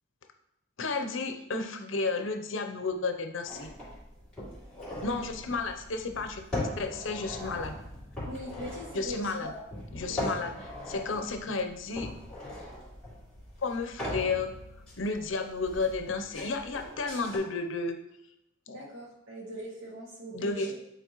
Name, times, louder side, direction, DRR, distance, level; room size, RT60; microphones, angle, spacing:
voice 1, 0.8-3.7 5.0-7.8 8.9-9.5 9.9-10.5 10.9-12.1 13.6-14.5 15.0-17.9 18.7-18.8 20.3-20.7, left 3 dB, 80° left, 6 dB, 0.7 m, -32 dB
sound 1, 3.5-17.4, left 1 dB, 5° left, 2.5 m, -40 dB
voice 2, 5.0-5.4 8.2-9.5 10.1-10.6 18.7-20.7, equal, 80° right, -4 dB, 2.1 m, -41 dB
8.1 x 4.2 x 3.1 m, 0.84 s
head